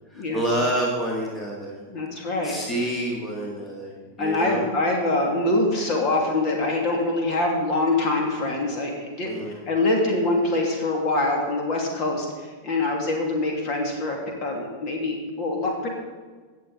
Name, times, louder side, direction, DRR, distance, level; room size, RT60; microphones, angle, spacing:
voice 1, 0.1-1.8 2.4-4.7 9.2-9.5, right 1 dB, 10° left, -2 dB, 1.9 m, -28 dB
voice 2, 1.9-2.5 4.2-9.3 9.7-15.9, left 2 dB, 40° left, 1 dB, 2.6 m, -24 dB
17.5 x 6.9 x 4.1 m, 1.4 s
figure-of-eight pair, 90°, 0 cm